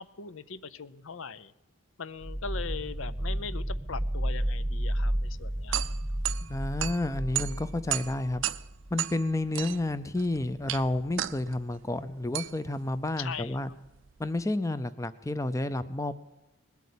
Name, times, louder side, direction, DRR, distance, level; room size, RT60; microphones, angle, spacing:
voice 1, 0.0-1.5 2.0-5.8 13.2-13.5, left 5 dB, 75° left, 15 dB, 0.6 m, -40 dB
sound 1, 2.2-8.9, right 1 dB, 15° right, 0.8 m, -32 dB
sound 2, 5.2-14.4, right 13 dB, 65° right, 0.4 m, -36 dB
voice 2, 6.5-8.5 8.9-13.7 14.2-16.1, left 2 dB, 15° left, 13 dB, 0.5 m, -30 dB
20.0 x 8.3 x 8.4 m, 0.96 s
head